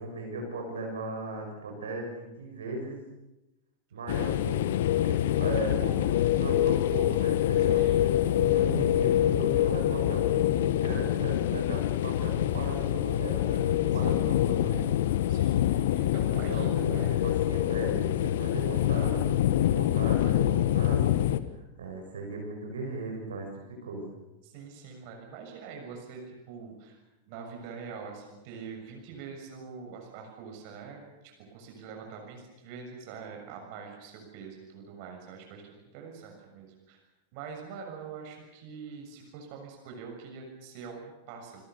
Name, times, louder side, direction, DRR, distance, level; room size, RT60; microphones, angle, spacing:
voice 1, 0.0-3.0 3.9-14.9 16.3-21.2 21.5-24.1, right 2 dB, 75° right, 2 dB, 7.2 m, -37 dB
sound 1, 4.1-21.4, left 12 dB, 60° left, 1.4 m, -26 dB
voice 2, 13.9-14.2 15.3-17.2 24.4-26.2 26.5-27.0 27.3-37.0 37.3-41.6, right 5 dB, 50° right, 2 dB, 6.9 m, -44 dB
28.0 x 21.5 x 6.9 m, 0.98 s
figure-of-eight pair, 90°, 0 cm